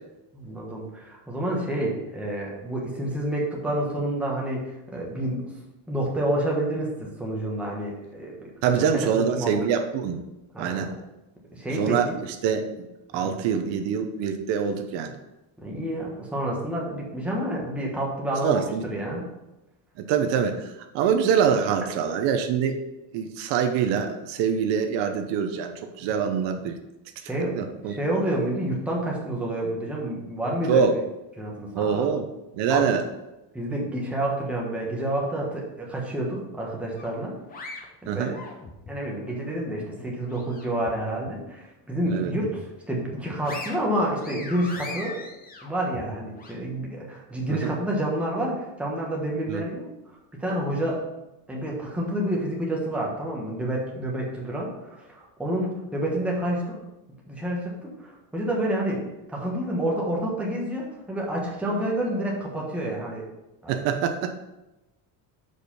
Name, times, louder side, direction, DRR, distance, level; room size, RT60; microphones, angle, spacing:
voice 1, 0.3-5.4 5.9-8.7 9.2-9.6 10.5-10.9 11.5-12.2 13.2-13.3 15.6-19.3 26.0-26.2 27.3-27.6 27.9-30.9 31.4-32.0 32.7-32.9 33.5-37.3 38.0-38.3 38.9-45.2 45.6-49.9 50.3-51.0 51.5-56.8 57.3-59.0 59.3-63.2 63.6-63.8, right 1 dB, 5° right, -3 dB, 1.1 m, -29 dB
voice 2, 8.6-10.2 10.6-10.9 11.7-12.1 12.4-12.9 13.1-15.1 18.4-18.8 20.1-22.8 23.1-26.8 27.4-28.0 30.7-30.9 31.7-32.3 32.5-33.0 38.1-38.4 42.1-42.3 47.5-47.8 49.5-49.6 63.7-64.3, right 7 dB, 70° right, 6 dB, 0.9 m, -25 dB
sound 1, 37.0-39.0 39.4-40.9 41.3-41.4 41.9-42.7 43.1-46.5, left 3 dB, 20° left, 0.8 m, -41 dB
6.5 x 5.1 x 5.2 m, 0.97 s
cardioid pair, 180°, 45 cm